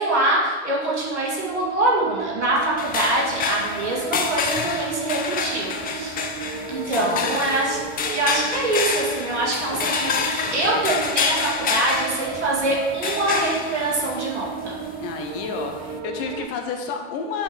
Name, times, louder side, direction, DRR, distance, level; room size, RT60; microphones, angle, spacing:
voice 1, 0.0-6.1 6.7-7.8 8.1-14.7, right 1 dB, 80° right, -5 dB, 2.5 m, -24 dB
sound 1, 0.9-16.5, right 7 dB, 40° right, 0.6 m, -34 dB
sound 2, 2.8-16.0, left 5 dB, 25° left, 0.8 m, -28 dB
voice 2, 7.0-7.3 15.0-17.4, left 5 dB, 40° left, 4 dB, 1.2 m, -31 dB
6.9 x 5.5 x 5.3 m, 1.4 s
figure-of-eight pair, 80°, 34 cm